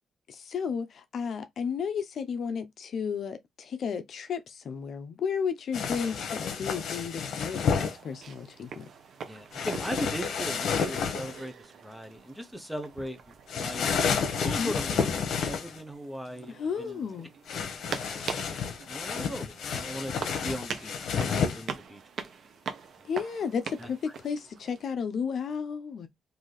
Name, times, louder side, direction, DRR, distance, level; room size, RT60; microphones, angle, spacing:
voice 1, 0.3-8.8 14.6-14.7 16.5-17.3 23.0-26.1, left 6 dB, 60° left, 0.6 m, -33 dB
sound 1, 5.7-7.9 9.5-11.4 13.5-15.8 17.5-21.6, left 6 dB, 80° left, 1.0 m, -30 dB
sound 2, 7.4-24.8, right 6 dB, 65° right, 0.8 m, -43 dB
voice 2, 9.3-13.9 14.3-17.0 17.8-18.2 18.9-20.1 20.4-22.0 23.8-23.9, equal, 5° right, 0.7 m, -39 dB
3.9 x 2.7 x 3.2 m
cardioid pair, 125°, 0 cm